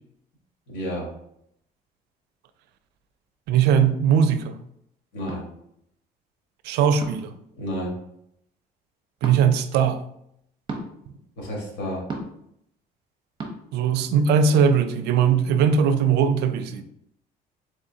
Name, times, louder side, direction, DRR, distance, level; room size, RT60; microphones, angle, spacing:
voice 1, 0.7-1.1 5.1-5.4 7.6-8.0 11.4-12.0, equal, 90° left, 1.5 m, -30 dB
voice 2, 3.5-4.6 6.6-7.3 9.2-10.0 13.7-16.8, right 7 dB, 80° right, 0.4 m, -20 dB
sound 1, 5.3-5.4 7.0-7.3 9.2-9.4 10.7-10.9 12.1-12.4 13.4-13.5, right 2 dB, 25° right, 0.8 m, -33 dB
3.6 x 3.5 x 2.7 m
cardioid pair, 110°, 17 cm